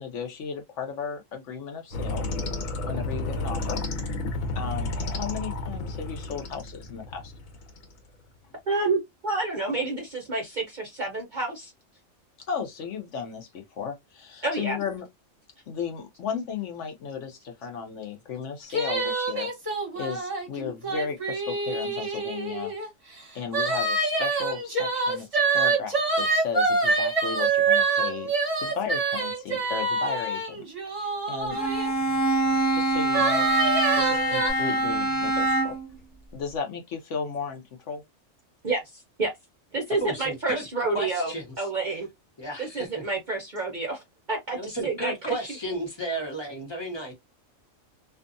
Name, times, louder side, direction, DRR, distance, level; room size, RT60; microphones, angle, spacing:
voice 1, 0.0-2.3 2.8-3.8 4.5-7.3 12.5-15.1 15.7-22.7 23.3-28.3 28.6-31.6 32.7-33.5 33.7-35.8 36.3-38.0, left 6 dB, 70° left, 0.9 m, -35 dB
sound 1, 1.9-7.9, left 2 dB, 90° left, 1.1 m, -32 dB
voice 2, 8.7-11.7 14.4-14.8 38.6-39.3 39.7-41.3 41.6-42.1 42.6-44.0 44.3-45.4, right 3 dB, 50° right, 0.6 m, -29 dB
sound 2, 18.7-22.9 23.5-31.9 33.1-34.5, right 3 dB, 30° right, 1.0 m, -26 dB
Bowed string instrument, 31.5-35.9, right 2 dB, 50° left, 1.3 m, -24 dB
voice 3, 40.0-40.6 40.9-41.5 42.4-43.0 44.5-47.1, right 1 dB, 20° left, 0.9 m, -33 dB
2.6 x 2.3 x 2.5 m
omnidirectional pair, 1.4 m